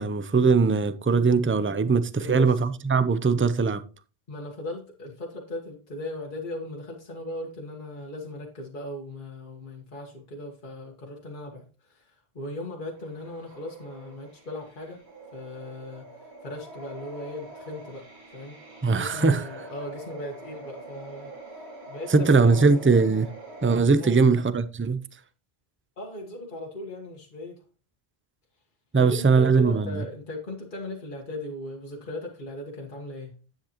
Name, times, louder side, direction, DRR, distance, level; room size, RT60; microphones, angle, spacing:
voice 1, 0.0-3.8 18.8-19.4 22.1-23.3 23.6-25.0 28.9-30.1, right 4 dB, 20° right, 0.3 m, -21 dB
voice 2, 2.2-2.6 4.3-15.0 15.3-16.1 16.4-18.1 18.3-18.6 18.9-21.3 21.9-22.7 23.9-24.2 26.0-27.6 29.0-33.3, left 1 dB, 50° left, 1.6 m, -38 dB
sound 1, 13.0-23.8, right 2 dB, 70° right, 2.6 m, -45 dB
10.0 x 8.5 x 2.9 m
omnidirectional pair, 1.1 m